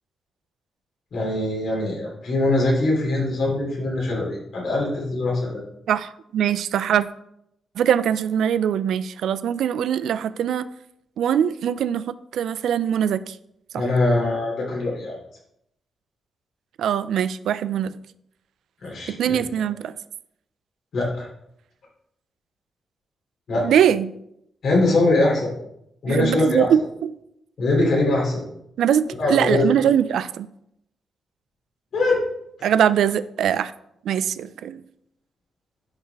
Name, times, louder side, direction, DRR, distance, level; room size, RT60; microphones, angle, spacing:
voice 1, 1.1-5.6 13.7-15.1 18.8-19.4 20.9-21.3 23.5-23.7 24.6-25.5 26.0-26.7 27.6-28.4 29.2-29.7 31.9-32.2, left 2 dB, 55° left, -3 dB, 2.8 m, -22 dB
voice 2, 5.9-7.1 7.8-10.7 11.2-13.4 13.7-13.8 16.8-18.0 19.1-19.9 23.6-24.1 26.1-27.2 28.8-30.5 32.6-33.7 34.0-34.8, right 9 dB, 85° right, 14 dB, 0.3 m, -22 dB
10.0 x 4.0 x 3.4 m, 0.77 s
wide cardioid pair, 175°, 0 cm